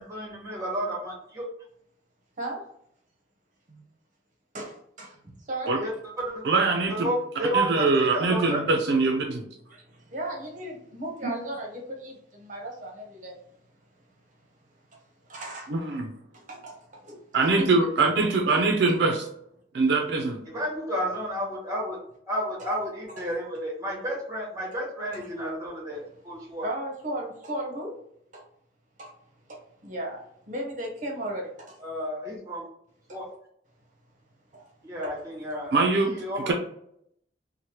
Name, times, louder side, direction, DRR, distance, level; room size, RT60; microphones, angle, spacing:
voice 1, 0.0-1.5 5.7-5.9 6.3-6.4 6.9-8.6 20.5-22.0 22.3-26.6 31.8-32.6 33.1-33.3 34.8-36.5, right 1 dB, 20° right, -2 dB, 1.0 m, -31 dB
voice 2, 4.5-5.2 5.5-5.8 9.7-13.4 14.9-15.0 15.3-15.7 16.3-17.2 17.6-17.7 25.1-25.2 26.6-27.9 28.3-28.4 29.0-29.1 29.5-31.8 33.1-33.2 34.5-34.7 35.0-35.2, right 1 dB, 45° right, 0 dB, 0.7 m, -36 dB
voice 3, 6.4-7.1 7.5-9.5 15.7-16.1 17.3-19.3 19.7-20.4 35.7-36.1 36.5-36.6, right 3 dB, 75° right, 3 dB, 0.4 m, -23 dB
3.1 x 2.1 x 2.8 m, 0.71 s
head